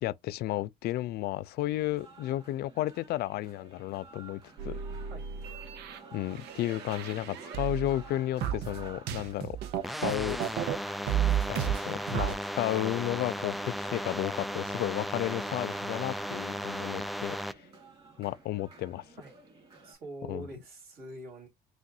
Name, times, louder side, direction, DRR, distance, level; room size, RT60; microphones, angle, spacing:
voice 1, 0.0-4.8 6.1-9.6 10.0-10.4 11.5-17.4 18.2-19.0 20.3-20.5, left 15 dB, 70° left, 0.4 m, -33 dB
sound 1, 2.0-19.9, right 3 dB, 30° right, 3.0 m, -52 dB
sound 2, 4.6-8.1 8.4-10.8 11.1-12.3, right 9 dB, 75° right, 0.8 m, -33 dB
sound 3, 9.8-17.5, equal, ahead, 0.3 m, -36 dB
voice 2, 19.8-21.5, right 2 dB, 60° right, 3.3 m, -44 dB
6.1 x 2.5 x 2.7 m
cardioid pair, 110°, 17 cm